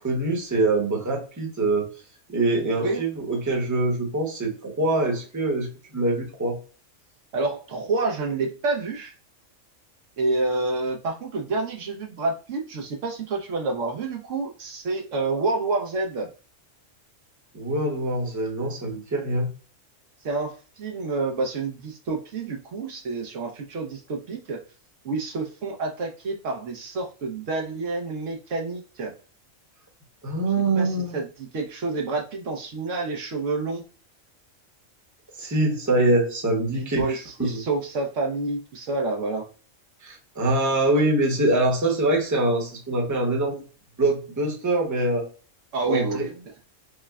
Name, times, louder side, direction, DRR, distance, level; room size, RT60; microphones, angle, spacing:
voice 1, 0.0-1.9 2.3-5.7 5.9-6.6 17.5-19.5 30.2-31.2 35.4-37.6 40.0-43.6 44.0-45.3 45.9-46.2, right 2 dB, 15° right, 1 dB, 0.8 m, -24 dB
voice 2, 7.3-9.1 10.2-16.3 20.2-24.6 25.0-29.1 30.8-33.8 36.7-39.5 45.7-46.3, right 3 dB, 75° right, 2 dB, 1.2 m, -28 dB
5.8 x 2.1 x 2.3 m, 0.36 s
omnidirectional pair, 1.3 m